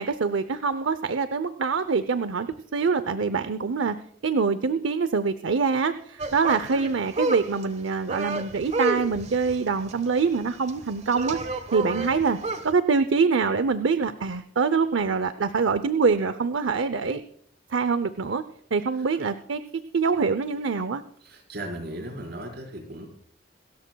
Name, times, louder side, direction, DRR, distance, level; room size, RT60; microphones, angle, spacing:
voice 1, 0.0-4.0 4.2-11.4 11.7-12.4 12.6-17.2 17.7-18.4 18.7-19.6 19.9-21.0, right 5 dB, 75° right, 12 dB, 0.6 m, -24 dB
sound 1, 6.2-12.7, right 2 dB, 35° right, 1.2 m, -31 dB
voice 2, 21.2-23.1, right 1 dB, 60° right, 2 dB, 4.6 m, -37 dB
27.0 x 13.5 x 2.3 m, 0.66 s
head